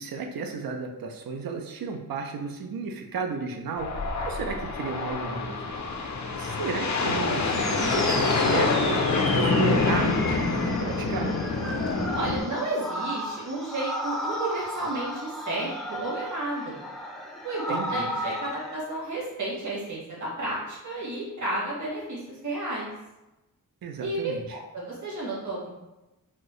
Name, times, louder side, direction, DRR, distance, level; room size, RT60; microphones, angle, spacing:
voice 1, 0.0-5.7 6.3-11.3 17.7-18.1 23.8-24.6, right 4 dB, 80° right, 4 dB, 0.5 m, -34 dB
sound 1, 3.8-12.4, left 3 dB, 55° left, 0.5 m, -26 dB
sound 2, 7.5-18.8, equal, ahead, 0.4 m, -35 dB
voice 2, 12.1-16.8 17.4-22.9 24.0-25.7, right 2 dB, 55° right, -5 dB, 1.3 m, -32 dB
4.2 x 2.0 x 3.0 m, 0.99 s
wide cardioid pair, 70°, 35 cm